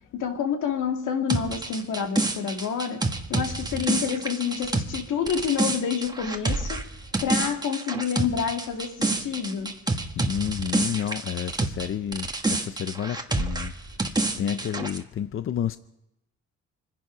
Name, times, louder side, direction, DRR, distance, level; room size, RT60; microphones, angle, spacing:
voice 1, 0.1-3.0 3.3-6.8 7.2-9.7 14.4-14.6, left 7 dB, 80° left, 3 dB, 2.2 m, -28 dB
sound 1, 1.3-11.9 12.1-15.0, right 2 dB, 15° right, 1.5 m, -28 dB
voice 2, 10.2-13.7 14.4-15.8, left 9 dB, 45° left, 12 dB, 0.6 m, -30 dB
25.5 x 11.0 x 5.0 m, 0.89 s
cardioid pair, 90°, 30 cm